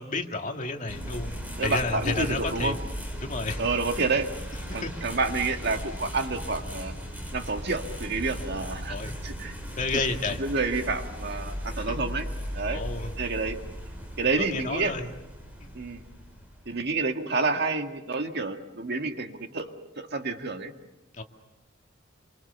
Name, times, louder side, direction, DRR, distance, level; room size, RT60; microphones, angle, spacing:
voice 1, 0.0-2.7 3.2-3.6 4.8-4.9 8.9-9.1 9.8-10.4 11.8-12.0 12.7-13.1 14.4-15.1 15.6-15.7 21.2-21.3, left 3 dB, 40° left, 3 dB, 2.1 m, -31 dB
sound 1, 0.9-16.9, equal, 10° right, 5.8 m, -37 dB
voice 2, 1.6-2.8 3.6-4.3 4.7-6.9 7.3-9.6 9.9-10.0 10.4-12.3 12.5-12.8 13.2-13.6 14.2-14.9 15.7-16.0 16.7-20.7, right 3 dB, 55° right, 6 dB, 1.7 m, -29 dB
28.0 x 25.0 x 6.9 m, 1.0 s
head